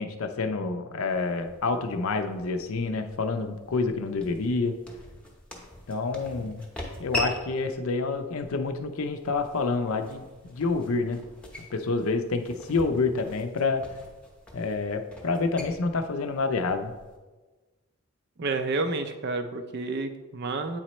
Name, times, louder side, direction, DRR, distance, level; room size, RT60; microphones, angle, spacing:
voice 1, 0.0-4.8 5.9-6.7 7.0-11.2 11.7-13.8 14.5-16.9, left 3 dB, 70° left, 7 dB, 0.5 m, -28 dB
sound 1, 1.1-17.2, left 1 dB, 5° left, 0.8 m, -42 dB
voice 2, 18.4-20.8, right 3 dB, 50° right, 8 dB, 0.4 m, -30 dB
8.7 x 4.2 x 3.0 m, 1.2 s
head